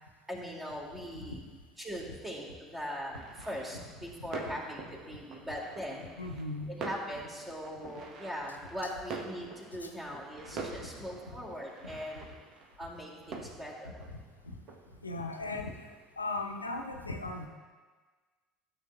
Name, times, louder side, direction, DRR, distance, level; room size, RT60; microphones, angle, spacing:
voice 1, 0.3-1.4 1.8-6.1 6.7-12.3 12.8-14.0, equal, 15° right, -2 dB, 2.1 m, -40 dB
sound 1, 3.1-16.5, right 4 dB, 50° right, 0.9 m, -46 dB
voice 2, 6.2-6.8 9.8-9.9 10.5-10.9 11.8-11.9 14.1-14.2 15.0-15.9 16.2-17.5, left 2 dB, 90° left, 3 dB, 0.6 m, -38 dB
13.0 x 7.2 x 2.2 m, 1.4 s
figure-of-eight pair, 65°, 0 cm